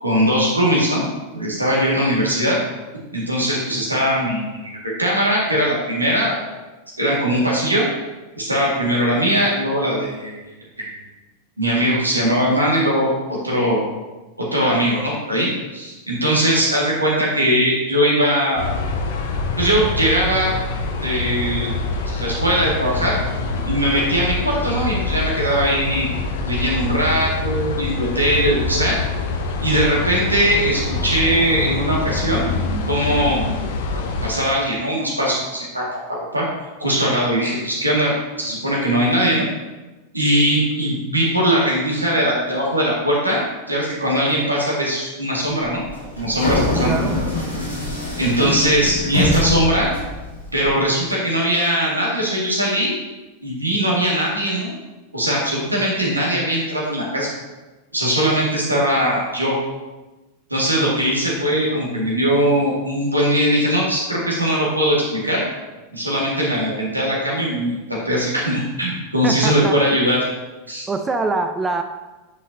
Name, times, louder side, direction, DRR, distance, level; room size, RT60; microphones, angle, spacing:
voice 1, 0.0-1.1 1.3-2.6 3.1-6.3 7.0-7.9 8.4-10.4 10.8-10.9 11.6-13.1 13.4-13.8 14.4-18.7 19.6-20.5 21.0-21.7 22.1-23.2 23.6-26.1 26.5-29.0 29.6-32.5 32.9-33.5 34.2-36.5 36.8-38.1 38.4-39.5 40.1-45.8 46.2-47.0 48.2-49.9 50.5-53.0 53.4-54.7 55.1-57.3 57.9-59.6 60.5-65.4 65.9-70.2 70.7-70.9, equal, 85° right, -4 dB, 1.9 m, -20 dB
sound 1, 18.6-34.3, left 3 dB, 55° left, 0.9 m, -25 dB
sound 2, 45.7-50.7, left 1 dB, 85° left, 2.5 m, -24 dB
voice 2, 46.7-47.2 69.2-69.8 70.9-71.8, right 3 dB, 15° right, 7 dB, 0.4 m, -24 dB
9.3 x 5.5 x 2.7 m, 1.1 s
figure-of-eight pair, 90°, 0 cm